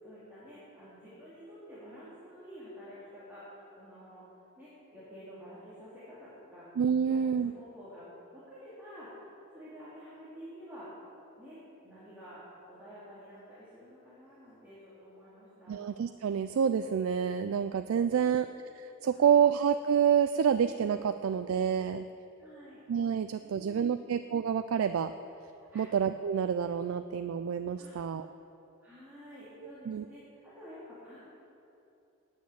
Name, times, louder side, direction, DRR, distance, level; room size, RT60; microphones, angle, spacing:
voice 1, 0.0-4.2 4.6-6.7 7.0-9.2 9.5-10.9 11.4-11.6 11.8-12.4 12.7-15.8 19.1-19.5 22.4-22.9 23.4-24.1 25.7-25.9 27.8-28.0 28.8-31.2, equal, 10° right, -12 dB, 2.7 m, -50 dB
voice 2, 6.8-7.5 15.7-18.5 18.8-22.1 22.9-25.1 25.8-28.3 29.9-30.0, right 7 dB, 75° right, 10 dB, 0.3 m, -28 dB
9.5 x 8.3 x 7.9 m, 2.9 s
head